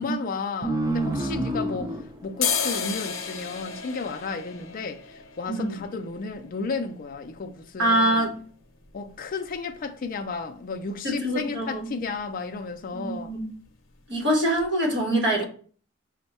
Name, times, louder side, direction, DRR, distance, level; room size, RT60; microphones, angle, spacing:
voice 1, 0.0-2.0 2.2-8.3 8.9-13.3 15.4-15.5, left 4 dB, 45° left, 0.4 m, -33 dB
sound 1, 0.6-3.8, right 1 dB, 15° right, 0.4 m, -29 dB
sound 2, 0.8-1.9 2.2-9.9 10.3-10.4 10.6-11.2 11.5-11.7 12.0-12.2 12.5-13.2 13.5-13.7 14.2-14.3 14.6-14.7, left 6 dB, 85° left, 0.7 m, -34 dB
voice 2, 5.5-5.8 7.8-8.4 11.0-11.9 12.9-13.5 14.1-15.5, right 1 dB, 60° right, 1.3 m, -24 dB
5.3 x 2.1 x 4.1 m
head